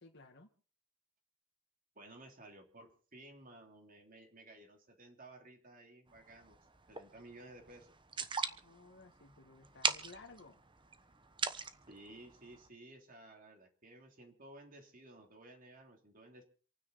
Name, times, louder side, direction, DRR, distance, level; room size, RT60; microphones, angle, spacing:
voice 1, 0.0-0.5 8.6-10.6, left 3 dB, 55° left, 2 dB, 1.7 m, -56 dB
voice 2, 1.9-6.6 6.9-7.9 11.9-16.4, right 1 dB, 40° right, 3 dB, 3.2 m, -56 dB
sound 1, 6.1-12.7, right 5 dB, 25° right, 1.1 m, -41 dB
27.5 x 9.7 x 4.1 m, 0.41 s
head